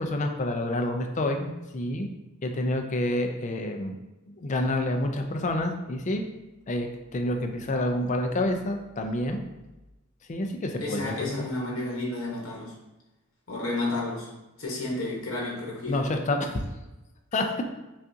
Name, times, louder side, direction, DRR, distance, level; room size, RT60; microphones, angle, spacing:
voice 1, 0.0-2.1 2.4-4.0 4.4-6.2 6.7-9.4 10.3-11.5 15.9-16.6 17.3-17.5, left 1 dB, 35° left, 4 dB, 0.4 m, -28 dB
voice 2, 10.8-12.7 13.5-14.3 14.6-16.0, left 2 dB, 70° left, -3 dB, 1.0 m, -31 dB
5.4 x 2.4 x 2.6 m, 1.0 s
head